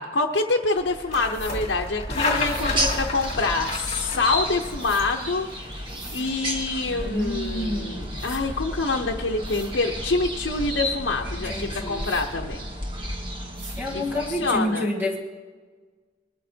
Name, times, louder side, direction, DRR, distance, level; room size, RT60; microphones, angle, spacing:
voice 1, 0.0-12.6 13.9-14.9, left 3 dB, 80° left, -1 dB, 0.8 m, -26 dB
sound 1, 0.8-13.0, left 2 dB, 40° left, 2.6 m, -34 dB
sound 2, 1.3-1.6 2.4-2.7 4.8-5.0 5.9-6.2 7.7-7.8 8.2-8.4 9.1-9.2 9.4-9.7 12.0-12.2 13.5-13.8, right 4 dB, 85° right, 2.4 m, -43 dB
sound 3, 2.3-14.6, equal, 30° right, 1.6 m, -33 dB
voice 2, 6.9-8.2 11.5-12.1 13.8-15.2, left 1 dB, 10° right, -2 dB, 1.7 m, -28 dB
21.0 x 13.0 x 2.8 m, 1.4 s
head